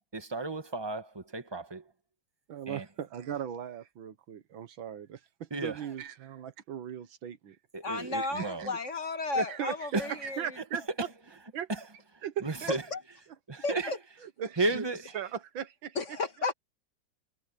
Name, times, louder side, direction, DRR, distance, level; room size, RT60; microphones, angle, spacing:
voice 1, 0.1-1.9 2.7-2.8 5.5-5.9 7.7-8.7 9.9-10.1 11.0-11.1 11.7-11.8 12.4-12.8 13.5-13.9 14.6-15.2, right 2 dB, 15° right, 1.2 m, -33 dB
voice 2, 2.5-7.6 8.4-8.8 9.4-10.8 11.5-11.7 12.2-12.7 14.2-14.8 15.1-16.0, right 8 dB, 85° right, 2.0 m, -38 dB
voice 3, 7.8-10.6 12.7-13.0 13.6-14.0 16.0-16.5, left 3 dB, 40° left, 1.8 m, -33 dB
omnidirectional pair, 2.1 m